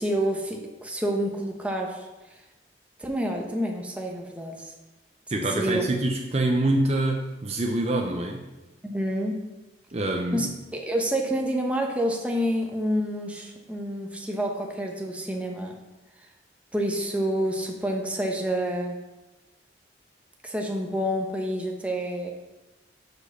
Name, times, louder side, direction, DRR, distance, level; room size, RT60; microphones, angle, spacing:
voice 1, 0.0-2.1 3.0-4.7 5.6-5.8 8.8-9.4 10.3-15.8 16.7-19.0 20.4-22.3, equal, 5° right, 0 dB, 0.9 m, -28 dB
voice 2, 5.3-8.4 9.9-10.5, right 2 dB, 35° right, 2 dB, 0.6 m, -25 dB
6.3 x 5.0 x 6.7 m, 1.1 s
head